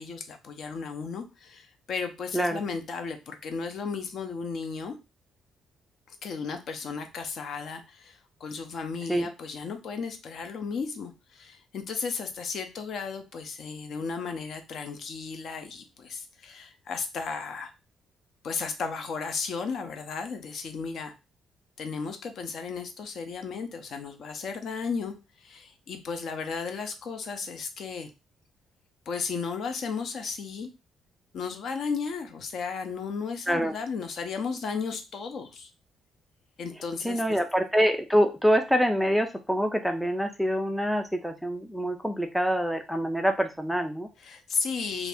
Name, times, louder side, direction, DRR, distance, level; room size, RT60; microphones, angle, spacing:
voice 1, 0.0-5.0 6.1-17.7 18.4-21.1 21.8-28.1 29.1-30.7 31.3-35.7 36.6-37.4 44.2-45.1, left 5 dB, 55° left, 7 dB, 0.5 m, -34 dB
voice 2, 37.0-44.1, equal, ahead, 5 dB, 0.3 m, -25 dB
2.7 x 2.5 x 3.4 m, 0.27 s
cardioid pair, 160°, 0 cm